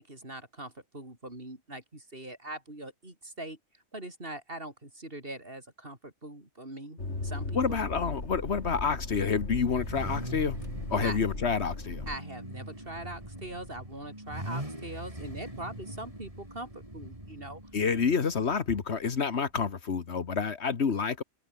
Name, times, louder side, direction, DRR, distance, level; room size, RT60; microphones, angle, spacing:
voice 1, 0.0-3.6 3.9-7.8 11.0-11.2 12.1-17.6, right 1 dB, 55° right, 5.6 m, -42 dB
sound 1, 7.0-12.2, left 2 dB, 85° left, 4.1 m, -37 dB
voice 2, 7.5-10.6 10.9-12.0 17.7-21.2, left 5 dB, 70° left, 1.7 m, -28 dB
Car / Idling / Accelerating revving vroom, 8.2-19.7, right 1 dB, 30° right, 6.9 m, -43 dB
open air
omnidirectional pair, 1.2 m